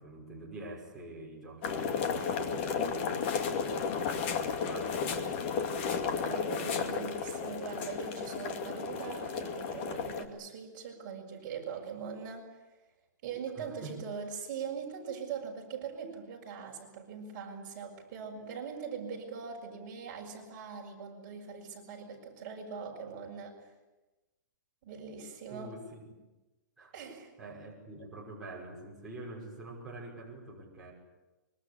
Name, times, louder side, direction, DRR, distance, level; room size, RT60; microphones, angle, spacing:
voice 1, 0.0-3.3 3.6-5.3 13.5-14.0 25.5-26.0 26.8-26.9 27.4-30.9, right 2 dB, ahead, -8 dB, 5.6 m, -46 dB
sound 1, 1.6-10.2, left 6 dB, 35° left, 2.2 m, -33 dB
voice 2, 6.2-12.6 13.2-23.6 24.8-25.7 26.9-27.3, right 6 dB, 35° right, 0 dB, 6.4 m, -41 dB
25.0 x 23.5 x 8.5 m, 1.1 s
hypercardioid pair, 170°, 10 cm